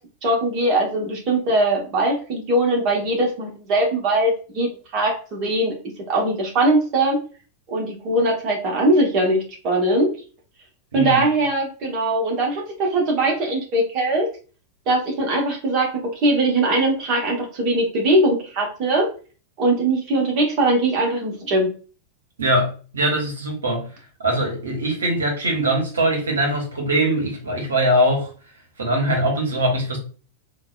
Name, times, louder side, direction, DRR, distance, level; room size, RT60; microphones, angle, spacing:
voice 1, 0.2-5.7 6.1-7.2 7.7-10.2 10.9-14.3 14.9-19.1 19.6-21.7, right 1 dB, 40° right, 1.0 m, -21 dB
voice 2, 10.9-11.2 22.4-23.9 24.2-28.3 28.8-30.0, right 1 dB, 70° right, 1.1 m, -22 dB
3.9 x 2.3 x 2.2 m
figure-of-eight pair, 90°, 0 cm